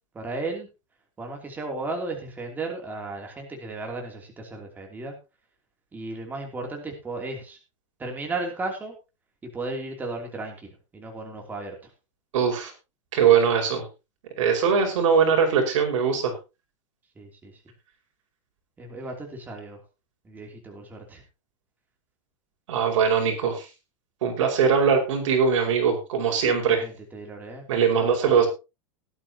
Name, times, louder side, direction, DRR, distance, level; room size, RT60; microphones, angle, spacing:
voice 1, 0.1-0.7 1.2-5.1 5.9-7.6 8.0-8.9 9.4-11.8 17.2-17.5 18.8-19.8 20.2-21.2 26.5-28.5, right 2 dB, 10° right, 1 dB, 3.0 m, -35 dB
voice 2, 12.3-12.7 13.1-13.8 14.4-16.3 22.7-23.7 24.2-26.8 27.7-28.5, right 6 dB, 70° right, 3 dB, 5.3 m, -21 dB
18.0 x 11.0 x 2.9 m, 0.28 s
supercardioid pair, 165°, 17 cm